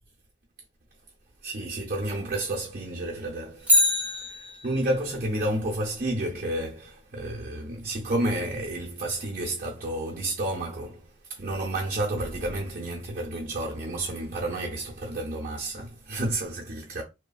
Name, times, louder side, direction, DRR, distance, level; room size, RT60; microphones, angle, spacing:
voice 1, 1.4-17.0, right 1 dB, 45° right, 0.6 m, -31 dB
Bicycle, 3.6-5.0 13.3-13.4, left 1 dB, 10° right, 0.7 m, -24 dB
3.1 x 2.2 x 2.3 m
head